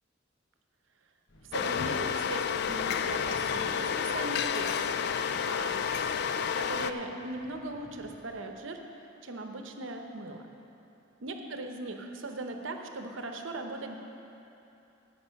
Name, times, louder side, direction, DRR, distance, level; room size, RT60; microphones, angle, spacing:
sound 1, 1.3-8.5, equal, 75° left, 1.1 m, -54 dB
sound 2, 1.5-6.9, left 7 dB, 60° left, 0.3 m, -30 dB
voice 1, 1.5-5.0 5.4-5.9 6.6-8.8 9.2-10.5 11.2-14.0, right 2 dB, 80° right, 5 dB, 0.8 m, -39 dB
16.0 x 5.4 x 5.7 m, 2.9 s
head